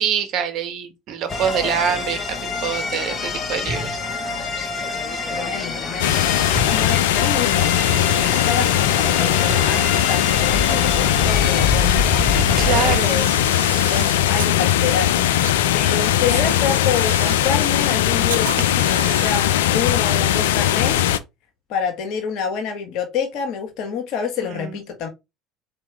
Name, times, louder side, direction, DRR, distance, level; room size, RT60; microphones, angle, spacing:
voice 1, 0.0-4.0 12.6-13.3 16.0-16.1 24.5-24.8, right 8 dB, 55° right, 1.4 m, -25 dB
sound 1, 1.3-13.0, left 3 dB, 30° left, 1.6 m, -26 dB
voice 2, 5.3-6.2 6.7-12.1 12.7-13.3 13.9-15.1 15.7-21.1 21.7-25.1, left 6 dB, 60° left, 1.5 m, -27 dB
sound 2, 6.0-21.2, left 12 dB, 80° left, 0.4 m, -19 dB
Camera, 12.0-14.6 15.4-15.6 16.2-17.5 18.2-19.5, right 9 dB, 85° right, 0.5 m, -34 dB
4.5 x 3.5 x 3.4 m
hypercardioid pair, 70°, 0 cm